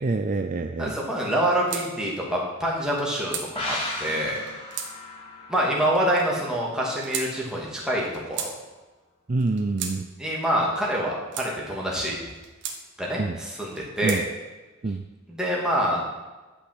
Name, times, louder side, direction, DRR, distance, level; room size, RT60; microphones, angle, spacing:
voice 1, 0.0-1.0 9.3-10.1 13.2-13.4 14.0-14.2 14.8-15.1, right 3 dB, 40° right, 7 dB, 0.5 m, -26 dB
voice 2, 0.8-4.4 5.5-8.0 8.3-8.5 10.2-12.2 13.0-14.2 15.3-16.0, equal, 5° right, -4 dB, 2.8 m, -26 dB
sound 1, 1.7-1.9 2.8-3.5 4.3-4.9 5.8-6.3 7.0-7.3 8.0-8.5 9.4-10.0 10.8-11.5 12.3-12.8 13.6-14.2, right 7 dB, 60° right, 1.6 m, -35 dB
sound 2, 3.6-7.0 7.3-7.4, left 1 dB, 30° left, 2.6 m, -36 dB
12.5 x 5.9 x 7.9 m, 1.2 s
head